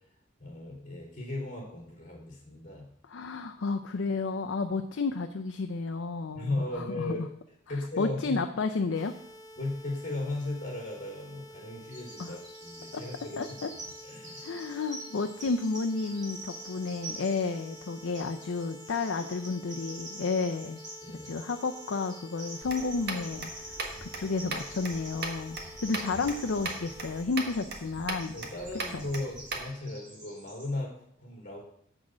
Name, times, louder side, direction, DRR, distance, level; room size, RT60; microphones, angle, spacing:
voice 1, 0.4-2.9 6.3-7.2 7.7-8.4 9.6-13.5 14.0-14.5 21.0-21.3 28.3-31.6, left 2 dB, 40° left, -2 dB, 3.1 m, -36 dB
voice 2, 3.1-7.3 8.0-9.1 12.2-12.4 12.9-13.0 13.4-13.7 14.4-20.8 21.2-28.4 28.9-29.1, left 4 dB, 75° left, 6 dB, 0.5 m, -32 dB
sound 1, 8.9-27.2, equal, 20° left, 0.7 m, -50 dB
Bird vocalization bird call bird song, 11.9-30.7, right 1 dB, 40° right, 4.2 m, -47 dB
sound 2, 22.6-29.7, right 3 dB, 55° right, 1.5 m, -39 dB
7.5 x 6.3 x 6.1 m, 0.69 s
head